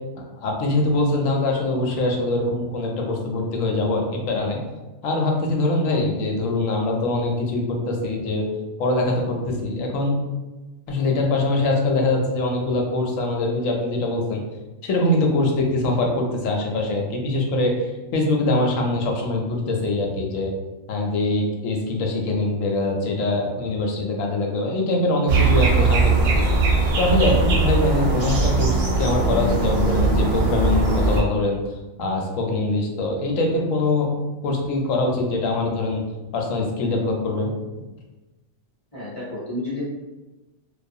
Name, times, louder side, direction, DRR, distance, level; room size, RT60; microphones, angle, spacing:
voice 1, 0.2-4.6 5.0-8.4 8.8-10.1 10.9-14.4 14.8-20.5 20.9-26.4 27.0-31.6 32.0-34.1 34.4-36.0 36.3-37.5, left 2 dB, 75° left, 0 dB, 0.9 m, -23 dB
sound 1, 25.3-31.2, right 3 dB, 65° right, 0.7 m, -20 dB
voice 2, 38.9-39.8, left 2 dB, 30° left, -9 dB, 0.7 m, -30 dB
2.4 x 2.3 x 2.6 m, 1.1 s
omnidirectional pair, 1.4 m